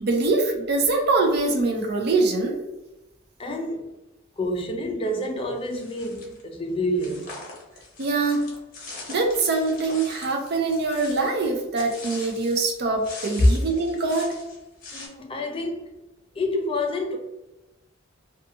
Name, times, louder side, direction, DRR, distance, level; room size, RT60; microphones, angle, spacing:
voice 1, 0.0-2.6 8.0-8.5 9.1-14.4, right 3 dB, 50° right, 0.5 m, -23 dB
voice 2, 3.4-3.9 4.4-7.3 14.9-15.9 16.4-17.2, left 1 dB, 25° left, 0.4 m, -28 dB
sound 1, 5.7-6.4 7.0-12.7 13.0-15.1, left 3 dB, 45° left, 0.9 m, -42 dB
2.7 x 2.3 x 2.6 m
head